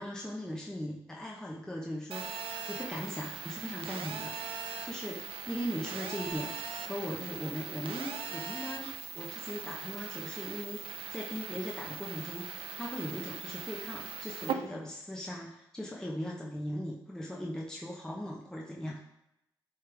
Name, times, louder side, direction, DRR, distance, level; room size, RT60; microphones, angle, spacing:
voice 1, 0.0-4.4 4.8-19.0, equal, 5° left, -3 dB, 0.9 m, -39 dB
Telephone, 2.1-14.5, right 7 dB, 75° right, 0.5 m, -40 dB
9.8 x 3.3 x 3.4 m, 0.85 s
cardioid pair, 60°, 9 cm